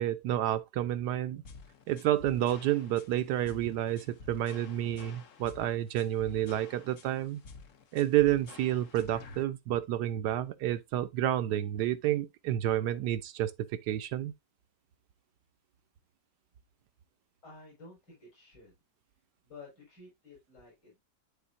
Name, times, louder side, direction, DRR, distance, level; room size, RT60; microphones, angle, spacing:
voice 1, 0.0-1.4 1.9-7.4 7.9-13.5 13.9-14.3, right 12 dB, 70° right, 1.2 m, -30 dB
sound 1, 1.4-9.4, left 4 dB, 55° left, 1.0 m, -50 dB
voice 2, 17.4-18.7 19.4-21.0, left 3 dB, 75° left, 5.7 m, -52 dB
11.5 x 3.9 x 2.5 m
omnidirectional pair, 1.9 m